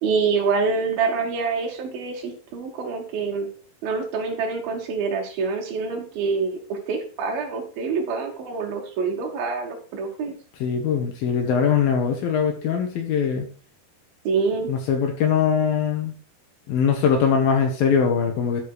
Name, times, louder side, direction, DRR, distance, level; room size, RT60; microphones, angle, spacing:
voice 1, 0.0-3.5 3.8-10.3 14.3-14.7, right 5 dB, 70° right, 1 dB, 3.8 m, -26 dB
voice 2, 10.6-13.5 14.7-16.1 16.7-18.6, left 7 dB, 70° left, 3 dB, 3.0 m, -21 dB
11.5 x 5.3 x 4.9 m, 0.40 s
omnidirectional pair, 4.4 m